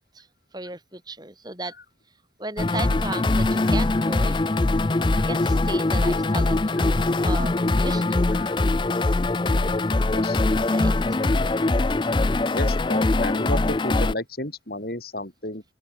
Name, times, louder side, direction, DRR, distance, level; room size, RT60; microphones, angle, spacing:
voice 1, 0.5-1.7 2.4-4.3 5.2-8.3 10.3-10.4 10.7-10.9, right 2 dB, 25° right, 4.9 m, -35 dB
sound 1, 2.6-14.1, left 2 dB, 25° left, 0.5 m, -22 dB
voice 2, 9.9-10.4 12.5-15.6, left 1 dB, 55° left, 5.1 m, -32 dB
open air
head